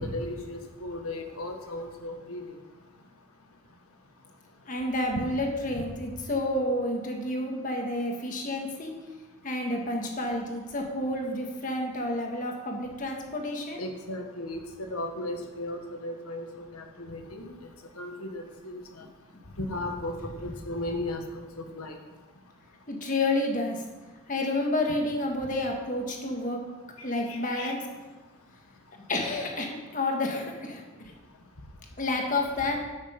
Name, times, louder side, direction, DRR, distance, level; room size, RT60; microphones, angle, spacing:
voice 1, 0.0-2.4 5.1-5.2 13.8-14.6 14.9-17.5 18.0-18.8 19.6-21.2 21.6-22.0 27.3-27.7, left 1 dB, 85° left, 4 dB, 1.6 m, -35 dB
voice 2, 4.6-8.9 9.4-13.8 22.9-23.8 24.3-26.6 27.0-27.8 29.1-31.1 32.0-32.8, left 1 dB, 35° left, 1 dB, 1.7 m, -30 dB
12.5 x 6.5 x 5.3 m, 1.2 s
head